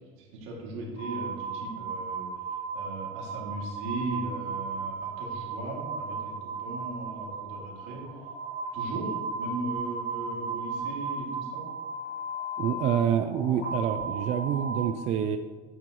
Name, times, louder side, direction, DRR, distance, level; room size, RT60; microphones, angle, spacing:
voice 1, 0.2-2.3 2.7-8.2 8.7-11.7, right 2 dB, 80° right, -2 dB, 2.5 m, -38 dB
sound 1, 1.0-14.8, right 3 dB, 75° left, 2.0 m, -35 dB
voice 2, 12.6-15.4, right 9 dB, 40° right, 8 dB, 0.4 m, -27 dB
9.1 x 7.6 x 3.1 m, 1.4 s
cardioid pair, 145°, 17 cm